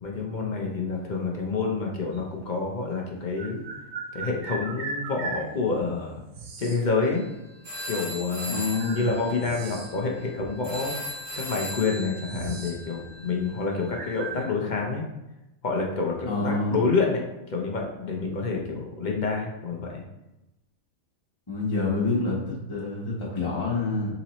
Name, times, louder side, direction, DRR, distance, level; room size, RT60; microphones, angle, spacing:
voice 1, 0.0-3.6 4.1-6.2 6.6-7.2 7.9-8.6 8.9-15.1 15.6-17.2 17.5-20.0, left 4 dB, 45° left, 0 dB, 0.7 m, -28 dB
sound 1, 2.1-2.2 3.3-5.5 6.3-6.9 8.0-8.1 8.7-10.1 10.4-10.5 11.3-11.4 11.7-12.8 13.1-13.4 13.9-14.4, right 4 dB, 70° right, 1.0 m, -37 dB
sound 2, 7.0-7.3 7.6-14.3, left 1 dB, 35° right, 1.7 m, -38 dB
voice 2, 8.5-9.1 16.3-16.8 21.5-24.2, left 3 dB, 25° left, -6 dB, 1.1 m, -27 dB
4.2 x 4.0 x 3.0 m, 0.93 s
omnidirectional pair, 1.5 m